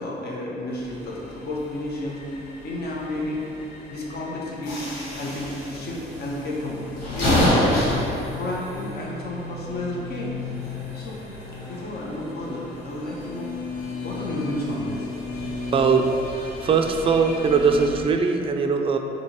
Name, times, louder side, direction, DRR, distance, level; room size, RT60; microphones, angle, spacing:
voice 1, 0.0-2.2 2.6-3.5 3.9-4.8 5.1-7.9 8.4-10.4 10.9-11.2 11.6-13.5 14.0-15.1, left 1 dB, 50° left, -3 dB, 0.9 m, -32 dB
sound 1, 0.7-18.0, left 1 dB, 85° left, 1.0 m, -30 dB
voice 2, 15.7-16.1 16.3-19.0, right 5 dB, 25° right, 5 dB, 0.4 m, -21 dB
5.0 x 2.8 x 2.9 m, 2.7 s
supercardioid pair, 70°, 20 cm